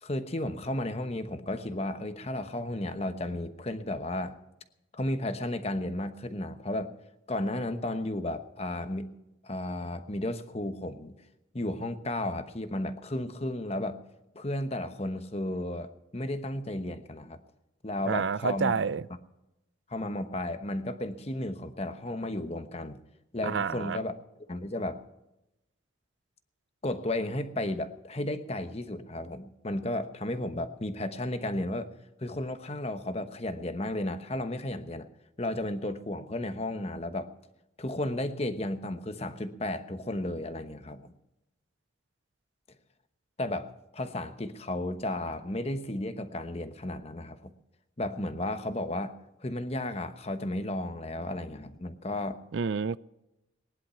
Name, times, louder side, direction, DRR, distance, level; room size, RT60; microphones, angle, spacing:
voice 1, 0.0-4.4 4.9-6.9 7.3-9.1 9.4-11.2 11.5-14.0 14.3-17.4 17.8-18.7 19.9-23.0 23.3-24.2 24.5-25.0 26.8-31.9 32.2-35.1 35.4-37.3 37.8-41.1 43.4-47.5 48.0-49.1 49.4-52.4, left 1 dB, 30° left, 1.1 m, -33 dB
voice 2, 18.0-19.0 23.4-24.0 52.5-53.0, right 6 dB, 65° right, 0.4 m, -29 dB
19.5 x 11.0 x 5.7 m
head